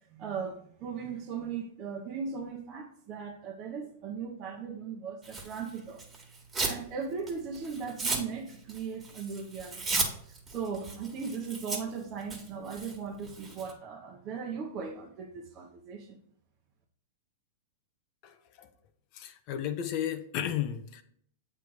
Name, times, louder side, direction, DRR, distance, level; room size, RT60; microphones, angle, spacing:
voice 1, 0.1-6.0 6.6-10.0 10.5-16.2, right 6 dB, 40° right, 0 dB, 0.9 m, -38 dB
Tearing, 5.2-6.8 7.2-13.7, right 3 dB, 20° right, 1.7 m, -35 dB
voice 2, 18.2-18.7 19.1-21.0, left 10 dB, 45° left, 8 dB, 0.6 m, -34 dB
7.9 x 3.3 x 4.7 m, 0.65 s
hypercardioid pair, 125°, 0 cm